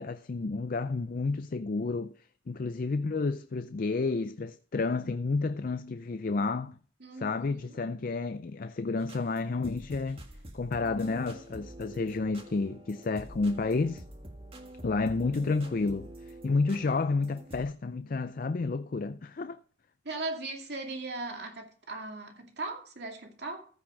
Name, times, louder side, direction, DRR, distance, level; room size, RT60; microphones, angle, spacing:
voice 1, 0.0-2.1 2.5-6.8 7.2-10.2 10.5-14.0 14.8-19.6, left 3 dB, 45° left, 0.4 m, -30 dB
voice 2, 7.0-7.8 20.0-23.7, right 2 dB, 60° right, 2.5 m, -38 dB
sound 1, 9.0-17.7, right 1 dB, 30° right, 1.7 m, -47 dB
14.5 x 6.1 x 5.2 m
head